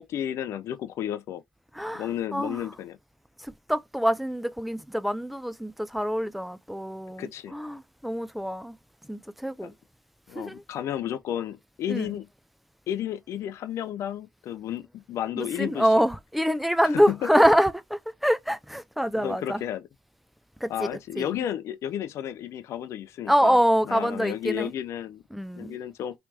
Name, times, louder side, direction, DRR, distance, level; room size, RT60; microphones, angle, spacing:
voice 1, 0.0-1.4 1.9-3.0 7.2-7.5 9.6-9.7 10.3-12.3 12.9-15.9 16.8-17.3 19.1-19.9 20.7-23.6 23.9-25.2 25.6-26.2, left 10 dB, 60° left, 0.4 m, -32 dB
voice 2, 1.7-2.6 3.4-8.8 9.1-9.7 10.4-10.6 11.9-12.1 15.4-19.6 20.6-20.9 21.2-21.4 23.3-24.7 25.3-25.8, equal, ahead, 0.4 m, -25 dB
3.1 x 2.9 x 3.2 m
supercardioid pair, 70°, 5 cm